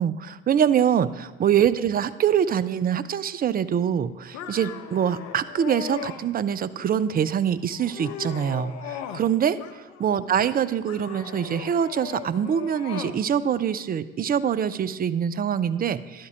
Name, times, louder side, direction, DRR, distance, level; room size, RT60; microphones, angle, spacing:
voice 1, 0.0-16.3, right 8 dB, 30° right, 15 dB, 0.5 m, -24 dB
sound 1, 4.3-6.2 6.8-7.3 7.7-9.3 9.6-10.3 10.9-13.2, left 7 dB, 65° left, 0.8 m, -38 dB
11.0 x 4.4 x 6.1 m, 1.2 s
hypercardioid pair, 55°, 29 cm